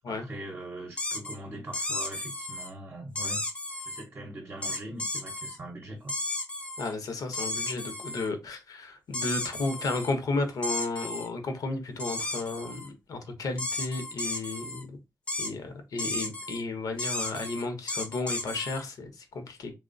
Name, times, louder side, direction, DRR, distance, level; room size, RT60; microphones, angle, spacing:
voice 1, 0.1-3.4 3.8-6.1, right 1 dB, 35° right, 0.7 m, -41 dB
sound 1, 1.0-1.4 1.7-2.7 3.2-4.0 4.6-5.6 6.1-6.9 7.3-8.3 9.1-10.1 10.6-11.3 12.0-12.9 13.6-14.8 15.3-15.5 16.0-16.6 17.0-18.8, left 2 dB, 15° left, 0.5 m, -34 dB
voice 2, 6.8-15.0 15.4-19.7, left 3 dB, 70° left, 0.6 m, -33 dB
2.9 x 2.0 x 2.5 m
cardioid pair, 105°, 6 cm